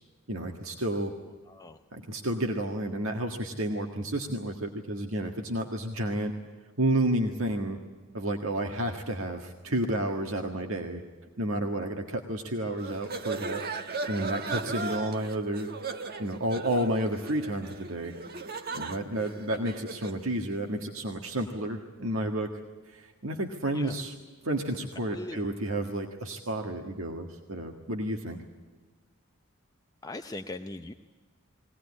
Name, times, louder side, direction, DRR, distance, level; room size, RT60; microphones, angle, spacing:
voice 1, 0.3-1.1 1.9-6.3 6.8-7.8 8.1-11.0 11.4-13.6 14.1-15.7 16.2-18.1 18.7-22.5 22.9-24.1 24.4-28.4, right 1 dB, 65° right, 3 dB, 1.7 m, -31 dB
voice 2, 1.5-1.8 23.7-24.0 25.1-25.4 30.0-30.9, left 2 dB, 15° left, 6 dB, 0.6 m, -40 dB
sound 1, 12.8-20.2, right 3 dB, 45° right, 1.2 m, -37 dB
22.0 x 18.0 x 9.7 m, 1.4 s
head